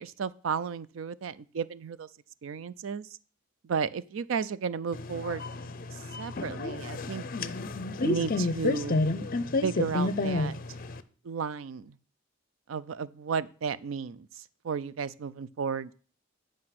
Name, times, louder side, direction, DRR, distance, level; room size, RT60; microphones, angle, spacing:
voice 1, 0.0-2.1 2.4-3.1 3.6-5.4 6.2-7.2 8.0-9.1 9.6-10.6 11.2-12.0 12.7-15.9, right 6 dB, 90° right, 17 dB, 0.4 m, -33 dB
sound 1, 4.9-11.0, left 2 dB, 45° left, 0.6 m, -30 dB
9.6 x 5.1 x 5.9 m, 0.41 s
head